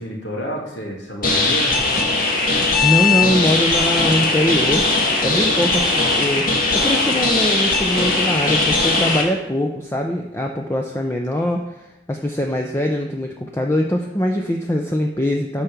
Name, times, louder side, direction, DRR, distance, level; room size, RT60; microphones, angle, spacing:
voice 1, 0.0-1.8 5.3-5.7, right 1 dB, 80° left, -2 dB, 2.6 m, -30 dB
sound 1, 1.2-9.2, left 3 dB, 50° left, 1.7 m, -19 dB
voice 2, 2.8-4.9 5.2-15.6, left 1 dB, 15° left, 2 dB, 0.6 m, -22 dB
9.4 x 4.6 x 6.8 m, 0.94 s
head